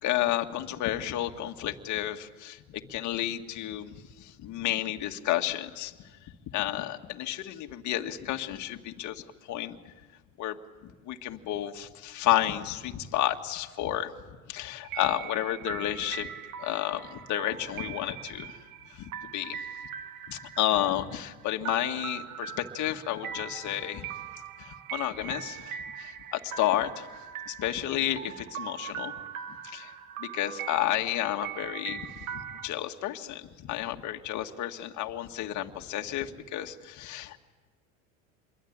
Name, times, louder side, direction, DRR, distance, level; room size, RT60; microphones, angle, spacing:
voice 1, 0.0-5.9 6.5-9.8 10.4-10.6 11.1-14.1 14.5-16.3 16.6-18.6 18.9-19.6 20.3-24.1 24.6-27.1 27.5-29.1 29.6-29.9 30.2-37.4, left 13 dB, 45° left, 4 dB, 1.9 m, -31 dB
sound 1, 14.8-32.7, right 9 dB, 85° right, 1.5 m, -41 dB
27.5 x 22.5 x 8.8 m, 1.3 s
supercardioid pair, 115°, 40 cm